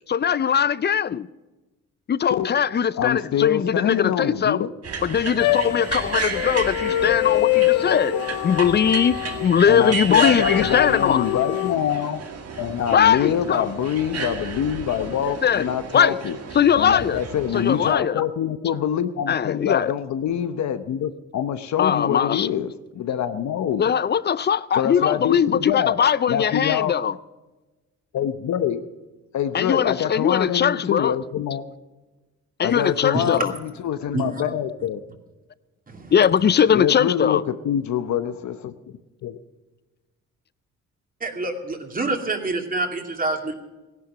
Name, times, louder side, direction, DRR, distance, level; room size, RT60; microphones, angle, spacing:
voice 1, 0.1-1.3 2.1-4.7 5.0-11.2 12.9-13.7 15.4-16.2 16.5-17.2 17.5-18.2 19.3-19.9 21.8-22.5 23.8-27.1 29.5-31.2 32.6-33.5 34.4-34.5 36.1-37.4, left 8 dB, 35° left, 0.5 m, -20 dB
voice 2, 3.0-4.7 9.7-12.2 12.6-16.4 16.7-23.9 24.7-26.0 26.3-26.9 28.1-28.8 29.3-31.7 32.6-35.0 36.7-38.7 39.2-39.4, left 9 dB, 65° left, 0.9 m, -25 dB
sound 1, 4.8-17.9, right 5 dB, 55° right, 2.2 m, -33 dB
sound 2, 5.4-9.7 10.4-11.7, left 16 dB, 85° left, 0.6 m, -24 dB
voice 3, 41.2-43.5, right 2 dB, 30° right, 2.6 m, -27 dB
16.5 x 11.0 x 6.0 m
cardioid pair, 90°, 30 cm